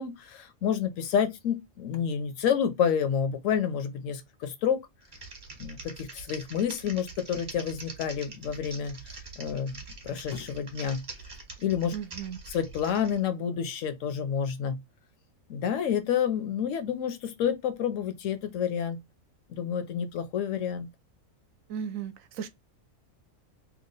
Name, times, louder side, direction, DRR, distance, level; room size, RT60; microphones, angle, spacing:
voice 1, 0.0-4.8 5.6-9.0 9.4-11.1 11.6-11.9 12.5-14.8 15.5-19.0 19.5-20.9, left 8 dB, 70° left, 0.9 m, -29 dB
Typing, 5.0-13.2, right 3 dB, 40° right, 1.1 m, -44 dB
voice 2, 11.9-12.4 21.7-22.5, right 8 dB, 75° right, 1.0 m, -35 dB
3.0 x 2.3 x 3.8 m
omnidirectional pair, 1.4 m